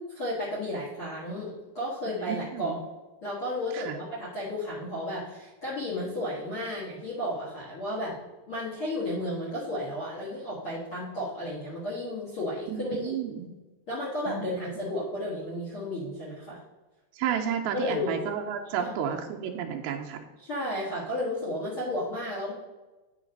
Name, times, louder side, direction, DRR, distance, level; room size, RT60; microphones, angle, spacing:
voice 1, 0.0-2.8 3.2-8.2 8.5-13.1 13.9-16.6 17.7-18.1 18.8-19.2 20.4-22.5, left 1 dB, 55° left, -6 dB, 1.5 m, -33 dB
voice 2, 2.2-2.8 3.7-4.0 12.7-13.5 14.3-14.4 17.2-20.2, right 8 dB, 80° right, 3 dB, 2.2 m, -32 dB
9.2 x 3.2 x 5.1 m, 1.2 s
omnidirectional pair, 4.8 m